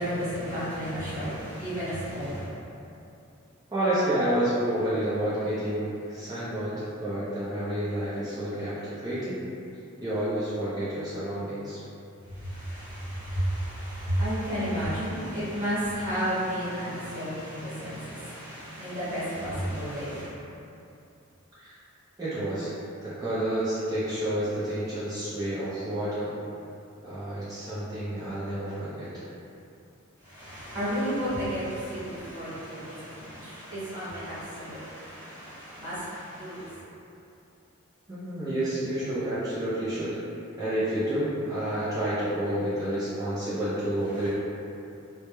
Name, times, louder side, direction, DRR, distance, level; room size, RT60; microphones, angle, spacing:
voice 1, 0.0-2.5 12.2-20.4 30.2-36.8 44.1-44.3, equal, 40° right, -14 dB, 1.1 m, -32 dB
voice 2, 3.7-9.4 10.0-11.8 21.6-21.8 22.2-22.7 23.0-26.3 27.0-29.2 38.1-40.1 40.6-44.3, right 1 dB, 15° right, -12 dB, 0.4 m, -29 dB
2.2 x 2.0 x 2.9 m, 2.7 s
head